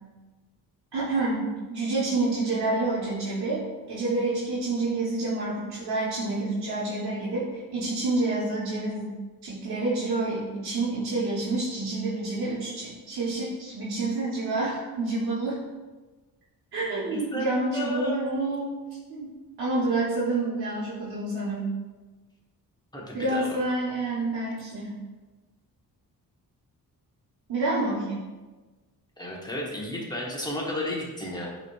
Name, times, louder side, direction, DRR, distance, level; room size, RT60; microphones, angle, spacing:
voice 1, 0.9-3.6 3.9-9.1 9.4-15.6 16.7-18.7 19.1-19.3 19.6-21.7 23.1-25.0 27.5-28.2, right 2 dB, 75° right, -9 dB, 1.1 m, -28 dB
voice 2, 17.1-18.3 22.9-23.6 29.2-31.5, left 1 dB, 10° left, -3 dB, 1.0 m, -33 dB
5.7 x 3.1 x 2.3 m, 1.2 s
cardioid pair, 80°, 38 cm